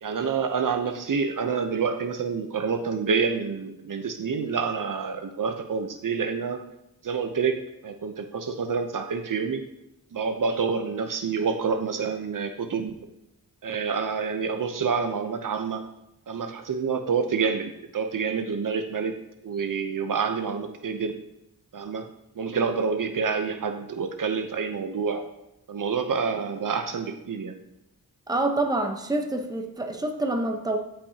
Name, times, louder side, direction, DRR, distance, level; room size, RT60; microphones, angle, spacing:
voice 1, 0.0-6.6 7.0-9.7 10.1-13.0 13.6-15.8 16.3-19.1 19.4-21.2 21.7-22.1 22.4-25.2 25.7-27.6, right 5 dB, 60° right, 7 dB, 0.8 m, -28 dB
voice 2, 28.3-30.8, right 2 dB, 10° right, 4 dB, 0.9 m, -27 dB
13.5 x 5.6 x 2.8 m, 0.85 s
wide cardioid pair, 85°, 36 cm